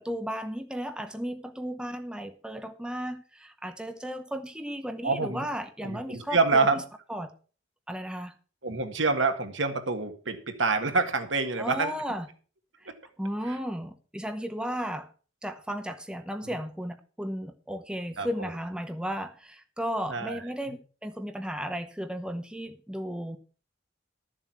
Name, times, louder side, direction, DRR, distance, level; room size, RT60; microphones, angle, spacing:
voice 1, 0.0-6.8 7.1-7.3 7.9-8.3 11.6-12.3 12.8-15.1 15.4-23.4, equal, 5° right, 0.8 m, -35 dB
voice 2, 5.0-5.5 5.8-6.8 8.6-11.9 16.4-16.5 18.2-18.5 20.1-20.4, right 4 dB, 80° right, 1.8 m, -27 dB
12.5 x 7.3 x 5.8 m
head